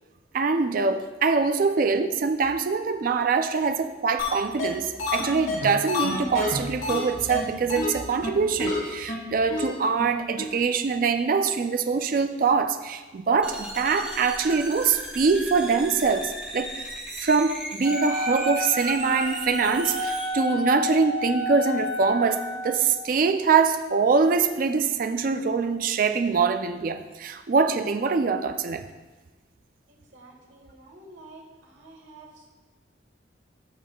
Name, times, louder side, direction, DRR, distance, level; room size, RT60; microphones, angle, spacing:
voice 1, 0.3-16.9 17.2-28.8, right 5 dB, 45° right, 8 dB, 0.3 m, -24 dB
sound 1, 4.2-4.3 4.6-4.7 5.0-7.0 7.3-7.4 7.7-7.9 8.2-8.3 8.6-8.8 9.1-9.2 9.5-9.6 10.0-10.1 10.4-10.5, left 3 dB, 90° left, 1.5 m, -28 dB
sound 2, 13.4-20.3, right 1 dB, 5° right, 1.1 m, -37 dB
Wind instrument woodwind instrument, 17.8-22.9, left 1 dB, 25° right, 2.4 m, -31 dB
voice 2, 30.1-32.5, right 2 dB, 70° right, 1 dB, 1.4 m, -49 dB
13.5 x 5.5 x 2.3 m, 1.3 s
head